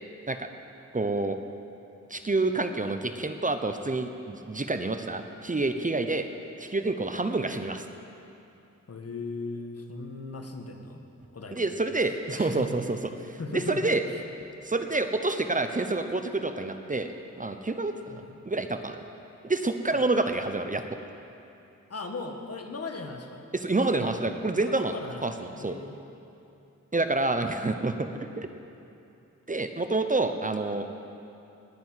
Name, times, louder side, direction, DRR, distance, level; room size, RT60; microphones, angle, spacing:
voice 1, 0.9-1.4 2.1-6.3 6.6-7.9 11.5-13.0 13.3-14.0 14.6-17.1 17.4-19.0 19.4-21.0 23.5-24.9 25.2-25.3 25.6-25.8 26.9-28.5 29.5-30.9, right 2 dB, 25° right, 7 dB, 0.9 m, -28 dB
voice 2, 8.9-11.0 11.3-11.7 12.0-12.8 13.4-14.0 18.1-18.4 19.9-20.0 21.9-23.4 24.3-24.6 24.9-26.0, left 3 dB, 50° left, 4 dB, 1.7 m, -38 dB
19.5 x 6.9 x 9.6 m, 2.7 s
cardioid pair, 70°, 30 cm